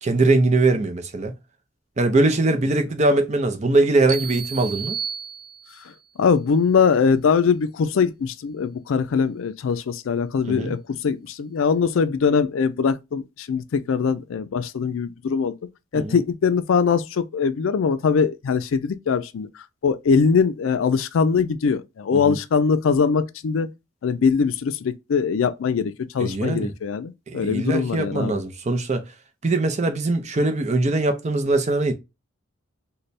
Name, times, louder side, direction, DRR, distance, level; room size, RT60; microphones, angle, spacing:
voice 1, 0.0-1.3 2.0-5.0 10.5-10.8 15.9-16.2 22.1-22.4 26.2-26.7 27.3-29.0 29.4-31.9, right 2 dB, 35° right, 0.5 m, -21 dB
sound 1, 4.1-6.0, right 7 dB, 80° right, 0.5 m, -32 dB
voice 2, 6.2-15.5 15.9-19.5 19.8-23.7 24.0-28.4, left 5 dB, 75° left, 0.4 m, -22 dB
3.3 x 2.2 x 4.0 m
head